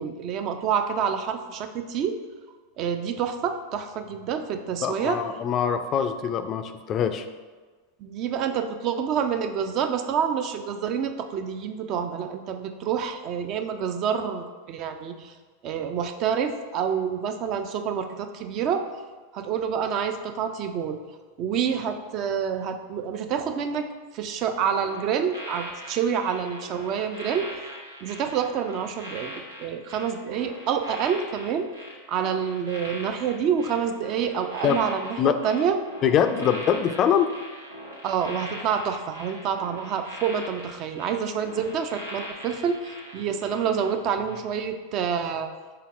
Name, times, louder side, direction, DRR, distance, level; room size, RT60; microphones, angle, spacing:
voice 1, 0.0-2.2 2.8-5.2 8.0-15.3 15.6-18.8 19.3-21.0 21.4-23.9 24.1-27.5 28.0-31.7 32.1-35.8 38.0-45.5, right 7 dB, 45° right, 7 dB, 0.4 m, -27 dB
voice 2, 4.8-7.2 34.6-34.8 35.2-35.4 36.0-37.3, left 8 dB, 35° left, 9 dB, 0.3 m, -23 dB
sound 1, 24.8-43.9 44.3-44.5, equal, 90° right, 0.7 m, -41 dB
5.6 x 3.7 x 2.5 m, 1.4 s
figure-of-eight pair, 90°, 0 cm